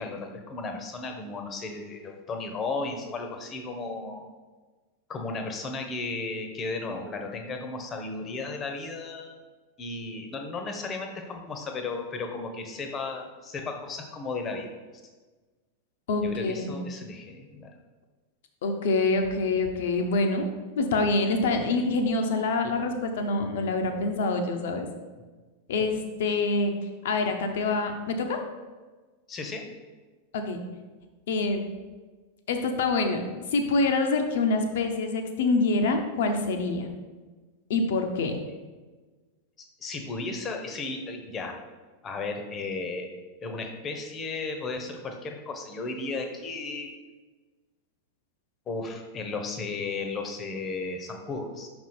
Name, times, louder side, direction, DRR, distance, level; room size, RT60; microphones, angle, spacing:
voice 1, 0.0-4.3 5.1-9.4 9.8-14.7 16.2-17.7 26.3-26.4 29.3-29.7 39.6-41.6 42.0-43.1 43.4-46.9 48.7-51.7, left 3 dB, 25° left, 5 dB, 0.9 m, -34 dB
voice 2, 16.1-16.8 18.6-20.5 20.8-24.9 25.7-26.7 27.0-28.4 30.3-30.6 31.3-31.6 32.5-33.2 33.5-36.9 37.7-38.4, left 3 dB, 55° left, 5 dB, 0.8 m, -26 dB
5.9 x 4.3 x 4.3 m, 1.3 s
figure-of-eight pair, 90°, 0 cm